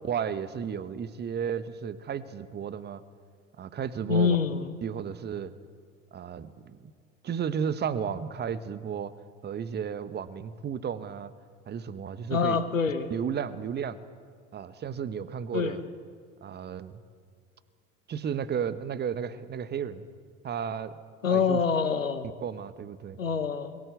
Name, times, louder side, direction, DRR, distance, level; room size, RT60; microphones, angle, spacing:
voice 1, 0.0-3.0 3.6-4.4 4.8-5.5 6.1-6.9 7.2-9.1 9.4-11.3 11.7-12.6 13.1-14.0 14.5-15.8 16.4-17.0 18.1-20.0 20.4-21.0 21.3-21.6 22.4-23.2, right 7 dB, 25° right, 14 dB, 1.2 m, -33 dB
voice 2, 4.1-4.8 12.3-13.1 15.5-15.8 21.2-22.3 23.2-23.8, left 6 dB, 80° left, 12 dB, 1.4 m, -26 dB
23.0 x 15.5 x 8.2 m, 2.1 s
figure-of-eight pair, 70°, 38 cm